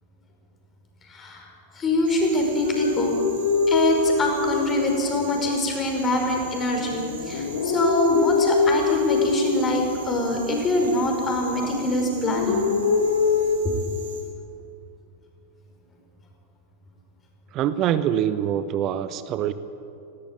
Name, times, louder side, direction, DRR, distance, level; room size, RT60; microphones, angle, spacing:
voice 1, 1.0-1.5 1.7-3.1 3.7-12.6, left 1 dB, 25° left, 1 dB, 5.2 m, -24 dB
sound 1, 2.0-14.2, right 6 dB, 60° right, 4.3 m, -43 dB
sound 2, 2.6-5.6 6.1-10.3 10.7-11.7 12.0-13.6, left 4 dB, 60° left, 1.6 m, -24 dB
voice 2, 17.5-19.5, right 10 dB, 35° right, 13 dB, 0.9 m, -24 dB
18.0 x 17.5 x 8.9 m, 2.6 s
figure-of-eight pair, 90°, 0 cm